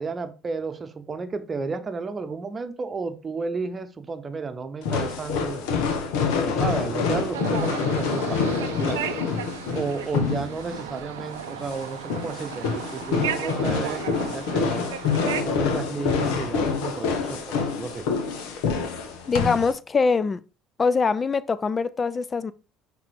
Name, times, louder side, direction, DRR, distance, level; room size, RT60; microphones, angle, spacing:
voice 1, 0.0-5.7 6.4-9.1 9.7-14.9 15.4-18.0, right 4 dB, 30° right, 0.9 m, -32 dB
sound 1, 4.8-19.7, left 5 dB, 75° left, 1.2 m, -27 dB
sound 2, 7.3-15.4, right 11 dB, 85° right, 0.4 m, -35 dB
voice 2, 19.3-20.4 20.8-22.5, left 4 dB, 30° left, 0.5 m, -23 dB
5.8 x 3.8 x 4.7 m
hypercardioid pair, 70°, 0 cm